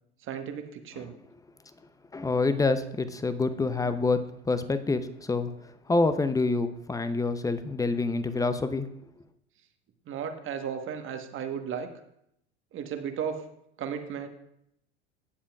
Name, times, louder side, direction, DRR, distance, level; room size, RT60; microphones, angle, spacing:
voice 1, 0.2-1.1 10.1-11.9 12.7-13.4 13.8-14.3, right 7 dB, 35° right, 7 dB, 1.3 m, -34 dB
voice 2, 2.1-4.2 4.5-5.5 5.9-8.9, left 3 dB, 10° left, 11 dB, 0.6 m, -27 dB
16.5 x 7.3 x 2.4 m, 0.75 s
hypercardioid pair, 85°, 34 cm